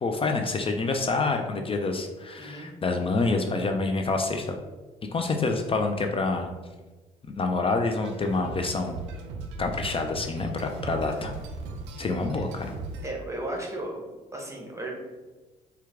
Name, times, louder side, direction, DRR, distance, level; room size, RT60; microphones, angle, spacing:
voice 1, 0.0-4.5 5.1-6.5 7.4-9.0 9.6-11.3 12.0-12.7, left 3 dB, 30° left, 4 dB, 0.5 m, -27 dB
voice 2, 2.4-2.7 11.2-11.3 13.0-14.0 14.3-15.0, right 1 dB, 15° right, 0 dB, 1.1 m, -35 dB
sound 1, 8.0-13.1, right 3 dB, 70° right, 0.5 m, -38 dB
4.5 x 2.3 x 3.5 m, 1.2 s
hypercardioid pair, 50°, 19 cm